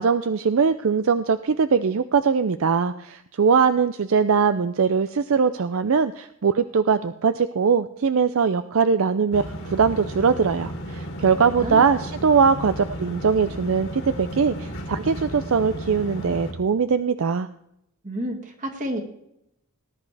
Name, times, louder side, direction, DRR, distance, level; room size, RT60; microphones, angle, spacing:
voice 1, 0.0-17.5, right 5 dB, 65° right, 11 dB, 0.5 m, -21 dB
sound 1, 9.3-16.5, right 1 dB, 55° left, 2.3 m, -34 dB
voice 2, 11.3-11.9 18.0-19.0, equal, 35° right, 3 dB, 2.1 m, -30 dB
19.0 x 10.5 x 3.4 m, 0.79 s
head